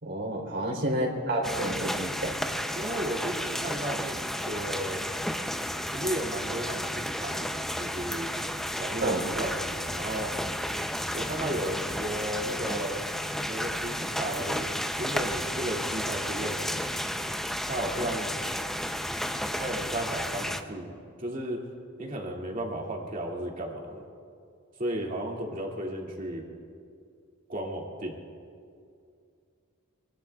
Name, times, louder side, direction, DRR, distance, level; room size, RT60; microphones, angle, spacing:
voice 1, 0.0-2.3 9.0-9.2, right 1 dB, 60° right, 0 dB, 3.6 m, -29 dB
sound 1, 1.4-20.6, equal, ahead, 0.6 m, -32 dB
voice 2, 2.7-4.2 4.4-5.1 5.9-8.3 8.8-10.3 11.1-13.0 13.5-14.7 15.0-16.9 17.7-18.3 19.6-21.6 22.0-24.0 24.8-26.5 27.5-28.2, right 1 dB, 40° right, -1 dB, 2.4 m, -34 dB
24.0 x 24.0 x 2.4 m, 2.4 s
head